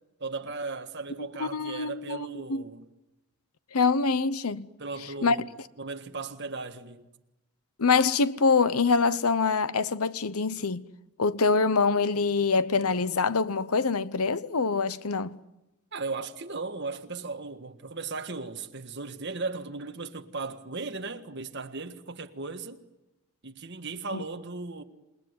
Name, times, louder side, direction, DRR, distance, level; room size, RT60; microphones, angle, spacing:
voice 1, 0.2-2.9 4.8-5.5 5.8-7.1 15.9-22.8 23.4-24.8, right 3 dB, 50° right, 1.6 m, -36 dB
voice 2, 1.4-2.6 3.7-4.7 5.2-5.4 7.8-10.8 11.2-15.4 24.1-24.2, left 4 dB, 85° left, 0.9 m, -25 dB
28.0 x 20.0 x 9.6 m
head